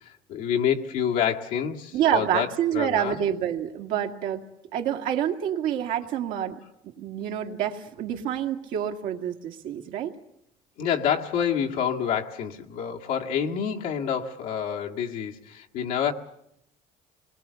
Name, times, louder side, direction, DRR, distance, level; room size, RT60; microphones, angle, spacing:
voice 1, 0.3-2.5 2.7-3.2 10.8-16.1, left 8 dB, 85° left, 0 dB, 2.0 m, -27 dB
voice 2, 1.9-4.4 4.7-6.6 7.0-10.1, right 10 dB, 80° right, 3 dB, 2.1 m, -27 dB
27.0 x 21.5 x 7.0 m, 0.79 s
cardioid pair, 120°, 14 cm